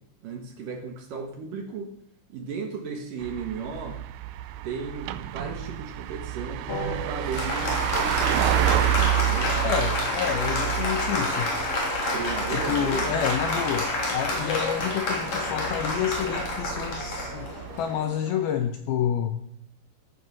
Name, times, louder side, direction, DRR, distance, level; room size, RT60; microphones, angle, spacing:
voice 1, 0.2-1.9 2.3-4.0 4.6-8.5 9.0-9.6 12.0-13.1, right 5 dB, 60° right, 4 dB, 2.4 m, -35 dB
sound 1, 3.2-18.0, right 14 dB, 90° right, 2.3 m, -30 dB
Applause, 6.7-18.6, left 2 dB, 40° left, 4.1 m, -29 dB
voice 2, 9.6-11.5 12.5-19.4, left 9 dB, 90° left, 6 dB, 2.1 m, -29 dB
15.5 x 9.7 x 6.3 m, 0.71 s
omnidirectional pair, 5.5 m